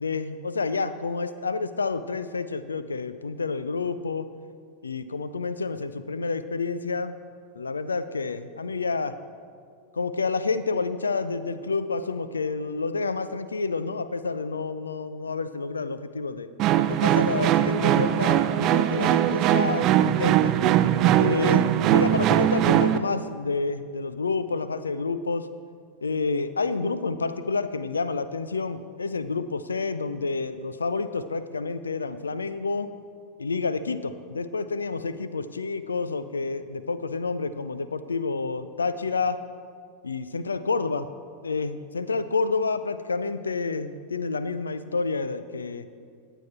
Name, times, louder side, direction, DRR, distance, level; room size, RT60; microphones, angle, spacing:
voice 1, 0.0-4.3 4.8-7.1 7.6-9.2 9.9-16.5 16.9-20.5 21.2-25.5 26.0-32.9 33.4-39.4 40.0-41.1 41.4-45.9, left 4 dB, 75° left, 13 dB, 0.5 m, -29 dB
sound 1, 16.6-23.0, right 11 dB, 35° right, 0.5 m, -21 dB
15.5 x 9.1 x 4.3 m, 2.2 s
figure-of-eight pair, 90°, 0 cm